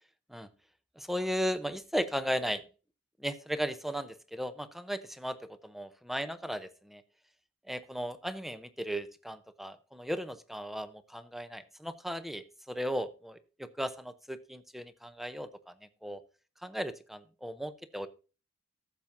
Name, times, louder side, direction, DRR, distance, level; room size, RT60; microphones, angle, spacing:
voice 1, 1.0-2.6 3.2-7.0 7.7-15.7 16.0-16.2 16.6-18.1, equal, ahead, 13 dB, 0.6 m, -36 dB
15.0 x 7.2 x 2.6 m, 0.34 s
head